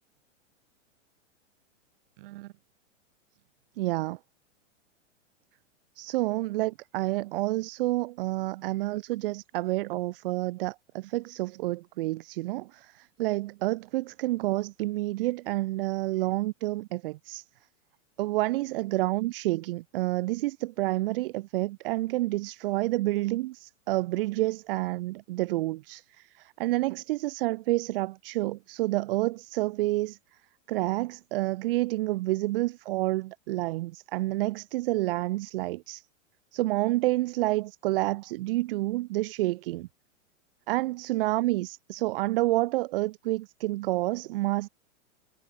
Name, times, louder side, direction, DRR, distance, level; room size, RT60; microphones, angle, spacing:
voice 1, 2.2-2.5 3.8-4.2 6.0-17.4 18.2-30.2 30.7-36.0 36.5-39.9 40.7-44.7, right 19 dB, 50° right, 0.6 m, -29 dB
hypercardioid pair, 140°, 38 cm